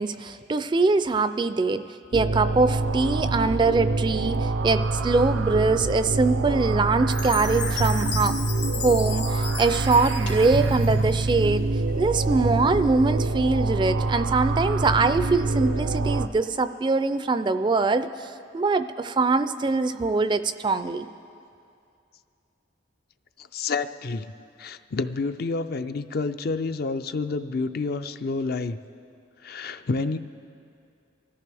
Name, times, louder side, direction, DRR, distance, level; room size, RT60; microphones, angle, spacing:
voice 1, 0.0-1.9 2.1-8.4 8.8-11.7 12.0-21.1, right 3 dB, 25° right, 12 dB, 0.3 m, -23 dB
sound 1, 2.1-16.3, right 3 dB, 80° right, 0.5 m, -26 dB
Chime, 7.1-11.3, left 8 dB, 70° left, 1.2 m, -35 dB
sound 2, 10.2-13.1, equal, 90° left, 2.7 m, -42 dB
voice 2, 23.4-24.3 24.6-28.8 29.4-30.2, left 3 dB, 55° left, 10 dB, 0.4 m, -29 dB
24.5 x 14.0 x 3.4 m, 2.5 s
head